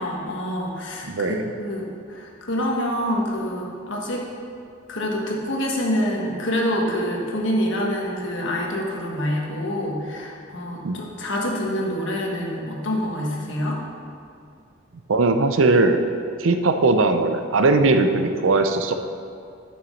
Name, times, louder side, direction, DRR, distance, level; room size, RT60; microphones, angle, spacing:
voice 1, 0.0-4.3 4.9-13.8, equal, 70° left, -1 dB, 1.4 m, -26 dB
voice 2, 1.0-1.4 10.8-11.0 15.1-16.0 16.4-18.9, right 3 dB, 75° right, 8 dB, 0.6 m, -19 dB
6.9 x 6.2 x 6.3 m, 2.4 s
head